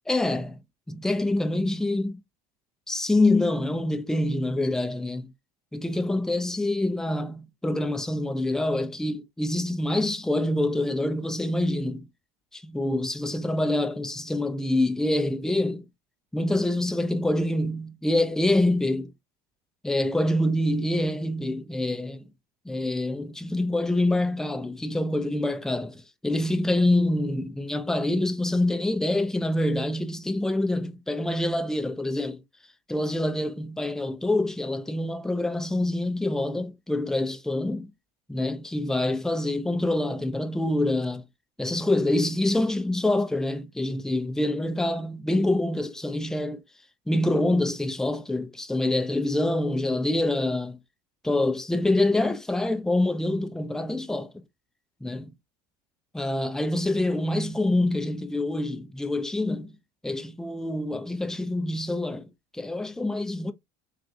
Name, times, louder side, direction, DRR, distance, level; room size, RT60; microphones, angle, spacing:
voice 1, 0.1-0.6 0.9-2.2 2.9-5.3 5.7-12.1 12.5-15.8 16.3-19.0 19.8-22.2 22.7-32.4 32.9-37.9 38.3-41.2 41.6-46.6 47.1-50.8 51.2-54.4 55.0-55.3 56.1-59.7 60.0-63.5, left 1 dB, ahead, 0.5 m, -26 dB
3.8 x 2.3 x 2.5 m
hypercardioid pair, 80°, 21 cm